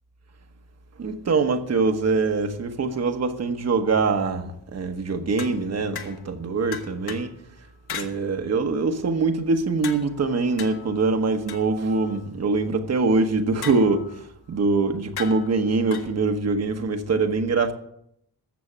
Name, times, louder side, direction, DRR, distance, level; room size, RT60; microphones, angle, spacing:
voice 1, 1.0-7.3 7.9-17.7, right 3 dB, 40° right, 1.2 m, -23 dB
sound 1, 5.4-6.4 6.7-7.3 7.9-8.1 9.8-12.3 13.6-14.2 15.2-16.1, left 8 dB, 70° left, 1.8 m, -38 dB
13.5 x 7.9 x 7.3 m
wide cardioid pair, 160°, 38 cm